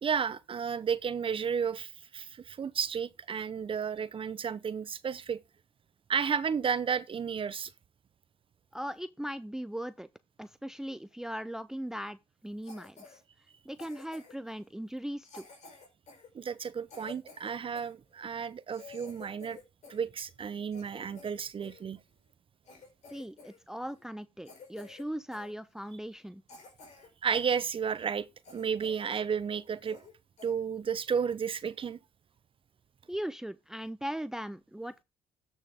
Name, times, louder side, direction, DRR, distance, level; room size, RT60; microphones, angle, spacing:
voice 1, 0.0-5.4 6.1-7.7 16.3-19.6 19.9-22.0 27.2-28.3 28.5-30.0 30.4-32.0, right 7 dB, 45° right, 0.8 m, -32 dB
voice 2, 8.7-10.1 10.4-13.2 13.6-15.5 23.1-26.4 33.1-35.0, equal, 5° right, 0.6 m, -39 dB
Cough, 12.6-13.2 13.8-14.5 15.2-17.9 18.4-18.5 18.7-20.1 20.4-21.8 22.3-22.4 22.7-23.6 23.8-24.1 24.4-25.1 25.3-25.5 26.0-26.1 26.5-27.5 27.9-28.0 28.4-29.1 29.4-29.5 29.8-30.1 30.4-30.5 31.1-31.3, left 4 dB, 65° left, 4.9 m, -52 dB
13.0 x 6.3 x 3.6 m
supercardioid pair, 65°, 13 cm